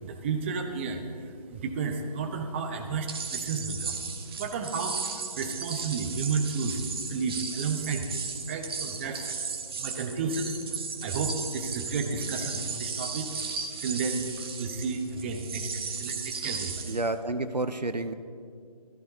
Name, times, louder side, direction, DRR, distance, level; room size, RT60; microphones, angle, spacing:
voice 1, 0.0-4.0 4.4-6.8 7.1-8.2 8.5-9.4 9.8-10.6 11.0-13.3 13.8-14.3 14.6-16.9, right 4 dB, 20° right, 4 dB, 0.8 m, -32 dB
sound 1, 3.1-17.1, right 5 dB, 35° right, 1.3 m, -35 dB
voice 2, 16.9-18.1, right 2 dB, 90° right, 10 dB, 0.8 m, -30 dB
21.0 x 14.0 x 2.8 m, 2.3 s
figure-of-eight pair, 145°, 20 cm